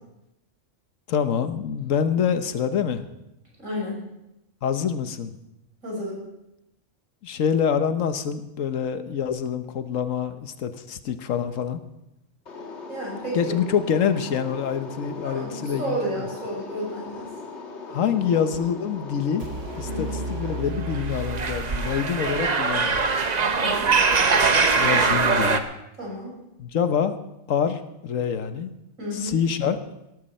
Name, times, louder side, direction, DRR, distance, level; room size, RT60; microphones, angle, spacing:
voice 1, 1.1-3.0 4.6-5.4 7.2-11.8 13.3-16.3 17.9-19.5 19.8-23.1 24.7-25.6 26.6-27.1 27.5-28.7 29.1-29.8, left 7 dB, 80° left, 10 dB, 1.3 m, -26 dB
voice 2, 3.6-4.0 5.8-6.2 12.9-13.6 15.2-17.3 19.8-20.2 23.5-23.9 26.0-26.3 29.0-29.4, equal, 85° right, -3 dB, 6.4 m, -31 dB
sound 1, 12.5-20.6, left 4 dB, 60° left, 1.6 m, -39 dB
sound 2, 19.4-22.4, right 2 dB, 70° right, 1.2 m, -33 dB
sound 3, 20.9-25.6, right 4 dB, 40° right, 0.8 m, -22 dB
17.5 x 13.0 x 4.3 m, 0.88 s
omnidirectional pair, 1.3 m